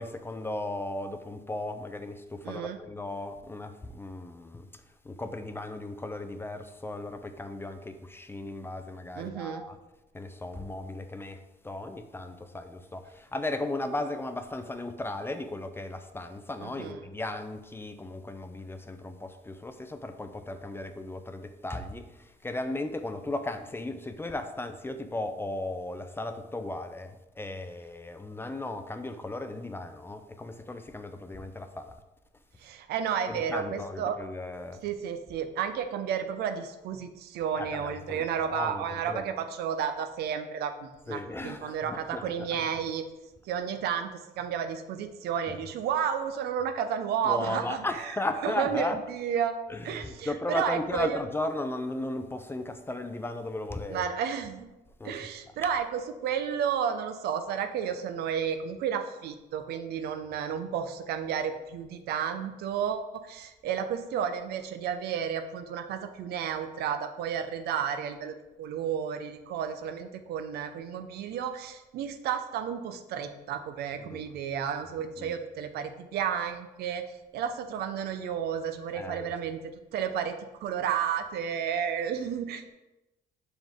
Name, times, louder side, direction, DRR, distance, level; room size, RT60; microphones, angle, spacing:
voice 1, 0.0-4.7 5.0-9.8 10.1-11.4 11.6-31.9 33.3-34.8 37.6-39.2 41.1-42.5 45.5-45.6 47.2-49.0 49.7-54.1 55.0-55.3 74.0-74.3 75.2-75.3 78.9-79.3, left 2 dB, 15° left, 0.4 m, -36 dB
voice 2, 2.4-2.8 9.1-9.6 16.6-17.1 32.6-34.2 34.8-43.1 43.5-44.1 44.4-48.2 48.4-49.6 49.8-51.2 53.9-54.7 55.0-77.0 77.3-79.6 79.9-80.4 80.6-82.7, right 8 dB, 75° right, 0.6 m, -32 dB
7.1 x 3.8 x 3.5 m
cardioid pair, 110°, 17 cm